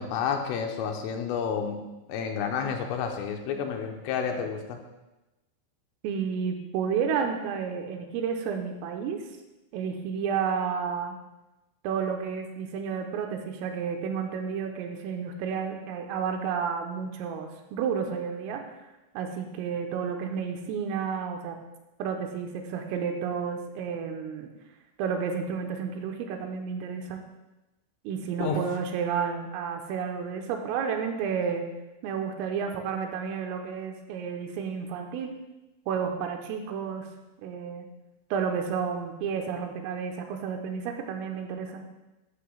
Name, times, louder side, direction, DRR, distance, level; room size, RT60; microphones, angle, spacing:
voice 1, 0.0-1.8 2.1-4.8 28.4-28.6, left 6 dB, 85° left, 4 dB, 3.3 m, -30 dB
voice 2, 6.0-9.2 9.7-11.2 11.8-18.6 19.2-21.6 22.0-24.5 25.0-27.2 28.1-31.7 32.0-35.3 35.9-37.1 37.4-37.9 38.3-41.8, right 6 dB, 90° right, 4 dB, 3.4 m, -31 dB
11.5 x 11.0 x 2.3 m, 1.0 s
omnidirectional pair, 5.9 m